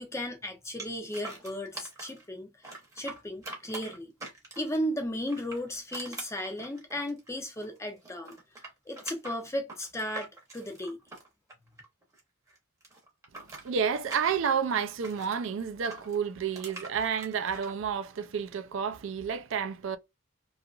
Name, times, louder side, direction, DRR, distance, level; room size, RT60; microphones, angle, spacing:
voice 1, 0.0-4.1 4.6-8.4 8.9-11.0, equal, 15° left, 0.5 m, -35 dB
sound 1, 0.8-2.2 2.6-4.8 5.2-7.8 8.0-12.2 12.5-15.4 15.8-17.7, right 2 dB, 15° right, 0.8 m, -44 dB
voice 2, 13.6-20.0, right 7 dB, 60° right, 0.3 m, -30 dB
2.7 x 2.4 x 2.3 m
head